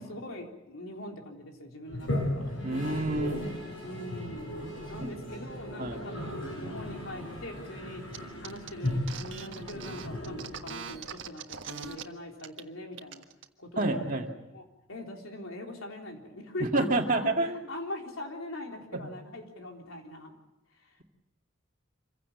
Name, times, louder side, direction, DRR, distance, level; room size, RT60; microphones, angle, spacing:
voice 1, 0.0-2.4 3.8-8.0 8.4-13.2 13.6-14.2 14.5-14.6 14.9-17.3 17.7-20.4 20.8-21.0, left 1 dB, 90° left, 2 dB, 3.8 m, -42 dB
Toilet flush, 1.9-11.0, left 1 dB, 65° left, 7.5 m, -36 dB
voice 2, 2.6-3.4 5.0-5.1 5.8-6.0 13.8-14.3 16.6-17.6 18.9-19.1, right 2 dB, 40° right, 2 dB, 2.3 m, -28 dB
sound 1, 8.1-8.2 8.4-12.0 12.4-12.6 12.9-13.5, right 7 dB, 65° right, 1.5 m, -41 dB
26.0 x 16.0 x 8.6 m, 1.0 s
head